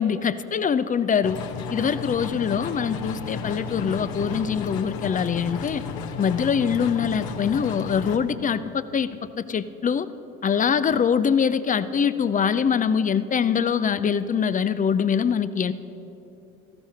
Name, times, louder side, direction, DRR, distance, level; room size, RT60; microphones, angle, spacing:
voice 1, 0.0-1.4 1.7-5.8 6.2-10.1 10.4-15.7, left 7 dB, 20° left, 15 dB, 0.5 m, -23 dB
sound 1, 1.2-8.2, left 6 dB, 55° left, 1.1 m, -33 dB
14.5 x 12.0 x 5.7 m, 3.0 s
figure-of-eight pair, 60°, 43 cm